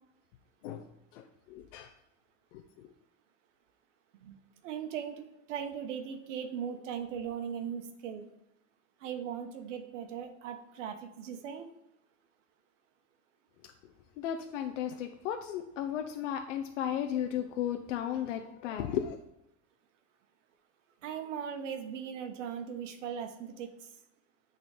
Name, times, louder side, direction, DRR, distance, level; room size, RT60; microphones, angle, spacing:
voice 1, 1.1-1.9 2.5-2.9 14.2-19.2, left 10 dB, 80° left, 5 dB, 0.8 m, -35 dB
voice 2, 4.6-8.3 9.0-11.7 21.0-23.9, right 8 dB, 80° right, 6 dB, 1.3 m, -39 dB
9.5 x 4.1 x 5.0 m, 0.86 s
supercardioid pair, 180°, 36 cm